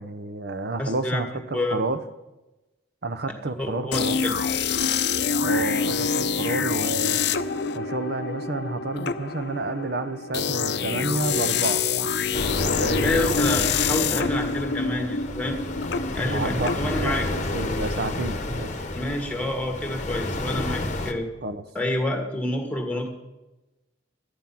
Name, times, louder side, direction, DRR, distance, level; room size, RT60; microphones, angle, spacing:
voice 1, 0.0-2.0 3.0-4.2 5.4-7.2 7.7-11.8 12.5-13.3 14.0-14.4 16.2-18.9 21.4-21.6, right 2 dB, 55° right, 11 dB, 0.8 m, -30 dB
voice 2, 0.8-1.2 1.5-1.8 3.6-4.3 13.0-15.6 16.2-17.3 19.0-21.2 21.8-23.1, left 1 dB, 5° left, 3 dB, 1.7 m, -28 dB
sound 1, 3.9-17.6, left 5 dB, 60° left, 0.6 m, -26 dB
sound 2, 12.3-21.1, left 2 dB, 40° left, 1.0 m, -30 dB
12.0 x 9.8 x 5.7 m, 1.0 s
head